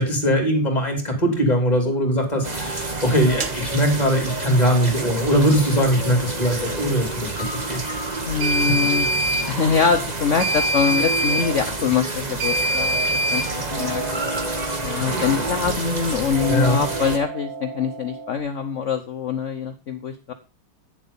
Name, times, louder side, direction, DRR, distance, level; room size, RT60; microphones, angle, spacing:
voice 1, 0.0-7.8 8.6-8.7 16.5-16.8, equal, 20° left, 3 dB, 3.2 m, -21 dB
sound 1, 2.4-17.2, right 2 dB, 20° right, 1.3 m, -29 dB
sound 2, 3.4-3.5 8.4-9.5 10.4-11.5 12.4-13.5, right 1 dB, 55° right, 0.7 m, -23 dB
voice 2, 8.2-9.1 9.5-13.0 13.3-13.4 13.8-14.0 14.8-20.3, left 6 dB, 65° left, 8 dB, 0.7 m, -23 dB
sound 3, 13.7-16.0 16.3-18.4, right 2 dB, 50° left, 2.5 m, -33 dB
9.2 x 7.5 x 5.5 m, 0.33 s
omnidirectional pair, 2.3 m